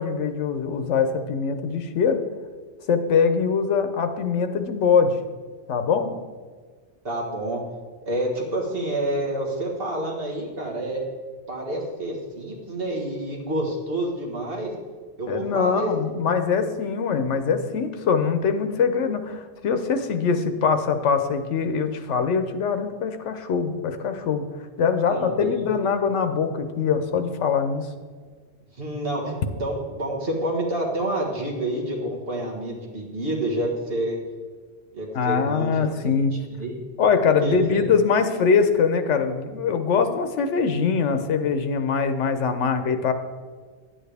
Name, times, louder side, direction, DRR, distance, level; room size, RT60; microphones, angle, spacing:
voice 1, 0.0-2.2 2.9-5.2 5.7-6.1 15.3-24.4 24.8-27.9 35.1-36.3 37.0-43.1, left 6 dB, 90° left, 8 dB, 1.1 m, -23 dB
voice 2, 7.0-7.6 8.1-11.0 11.5-14.7 15.2-15.9 25.1-25.6 28.8-34.2 34.9-36.1 36.5-36.8 37.4-37.8, right 1 dB, 55° right, -1 dB, 1.8 m, -28 dB
11.0 x 8.9 x 3.4 m, 1.5 s
omnidirectional pair, 1.2 m